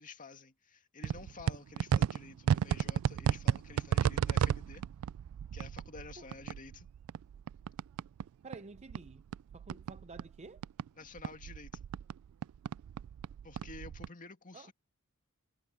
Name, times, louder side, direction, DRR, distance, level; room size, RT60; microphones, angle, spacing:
voice 1, 0.0-4.8 5.5-6.9 11.0-11.9 13.4-14.7, left 3 dB, 40° left, 2.2 m, -51 dB
sound 1, 1.0-8.3 8.5-10.9 11.2-14.1, right 8 dB, 80° right, 0.3 m, -33 dB
voice 2, 8.4-9.2 9.5-10.6 14.5-14.7, right 3 dB, 30° right, 0.6 m, -50 dB
head